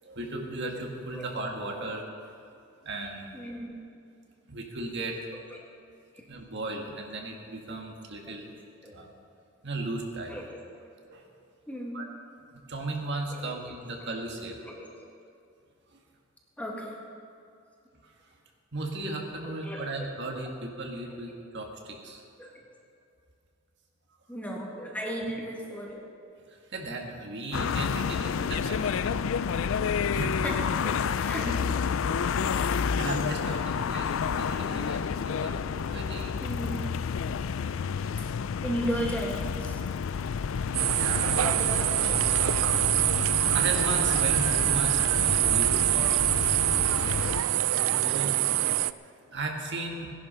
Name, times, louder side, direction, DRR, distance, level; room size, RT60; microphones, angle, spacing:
voice 1, 0.0-2.0 2.8-3.4 4.5-5.3 6.3-8.5 8.9-9.1 9.6-10.4 11.1-11.3 11.9-12.1 12.7-14.6 15.9-16.0 18.0-18.3 18.7-22.2 26.5-29.2 30.1-30.4 31.4-31.6 32.0-32.2 32.5-36.5 40.9-41.3 43.5-46.4 47.3-48.6 49.3-50.1, right 2 dB, 60° right, 1 dB, 1.8 m, -36 dB
voice 2, 3.3-3.8 5.3-5.4 6.1-6.2 8.8-9.0 10.3-10.6 11.7-12.0 13.3-13.5 14.7-14.9 16.6-17.0 19.6-20.2 22.4-22.6 24.3-26.0 30.4-30.9 31.2-31.5 36.4-36.8 37.9-38.0 38.6-39.8 41.2-42.6, equal, 5° left, -1 dB, 1.9 m, -36 dB
sound 1, 27.5-47.4, left 6 dB, 65° left, 0.4 m, -30 dB
sound 2, 40.7-48.9, right 15 dB, 80° right, 0.4 m, -25 dB
17.5 x 11.0 x 5.6 m, 2.5 s
head